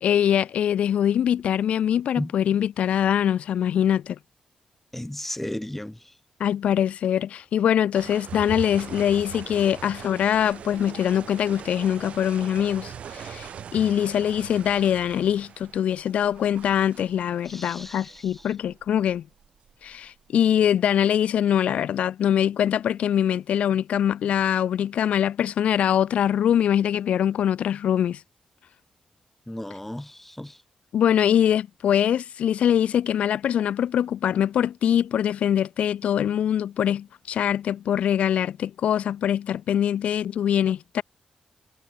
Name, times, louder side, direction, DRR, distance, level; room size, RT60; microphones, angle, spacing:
voice 1, 0.0-4.2 6.4-19.2 19.8-28.2 30.9-41.0, left 9 dB, 85° left, 0.5 m, -23 dB
voice 2, 4.9-6.1 17.5-18.5 29.5-30.6, left 1 dB, 10° left, 2.1 m, -35 dB
sound 1, 7.9-20.5, right 8 dB, 80° right, 3.4 m, -41 dB
cardioid pair, 60°, 2 cm